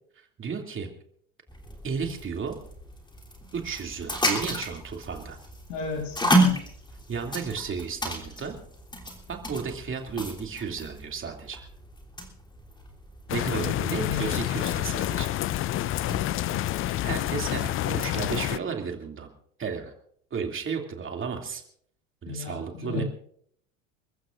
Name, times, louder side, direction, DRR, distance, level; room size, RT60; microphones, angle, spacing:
voice 1, 0.4-0.9 1.8-2.6 3.5-5.4 7.1-8.6 9.3-11.7 13.3-15.4 16.8-19.3 19.6-19.9 20.3-21.6 22.2-23.0, right 6 dB, 30° right, 3 dB, 2.6 m, -33 dB
sound 1, 1.5-16.3, equal, 10° left, 3.2 m, -32 dB
voice 2, 5.7-6.6 14.0-14.4 16.3-16.8 22.3-23.0, left 4 dB, 65° left, 1 dB, 7.1 m, -34 dB
sound 2, 13.3-18.6, left 14 dB, 30° left, 0.5 m, -28 dB
30.0 x 14.5 x 2.5 m, 0.65 s
hypercardioid pair, 80°, 41 cm